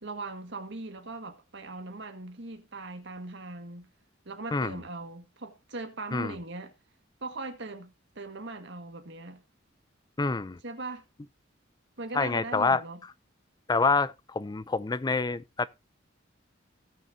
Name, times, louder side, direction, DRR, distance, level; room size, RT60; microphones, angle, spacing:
voice 1, 0.0-3.9 4.3-6.7 7.2-9.4 10.6-11.1 12.0-13.0, right 2 dB, 65° right, 1.7 m, -40 dB
voice 2, 10.2-10.6 12.1-12.8 13.7-15.7, left 4 dB, 20° left, 0.4 m, -27 dB
18.0 x 6.3 x 2.7 m
head